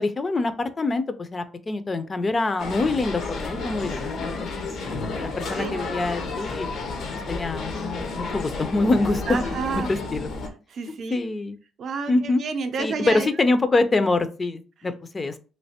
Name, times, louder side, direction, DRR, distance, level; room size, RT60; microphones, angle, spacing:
voice 1, 0.0-4.5 4.8-6.7 7.3-9.4 9.9-10.3 11.1-11.6 12.1-12.4 12.8-15.4, left 2 dB, 30° left, 11 dB, 0.4 m, -25 dB
sound 1, 2.6-10.5, left 3 dB, 75° left, 0.6 m, -31 dB
voice 2, 9.3-9.9 10.7-11.2 11.8-13.3, right 5 dB, 60° right, 7 dB, 0.5 m, -30 dB
3.1 x 2.8 x 2.8 m, 0.36 s
cardioid pair, 90°, 0 cm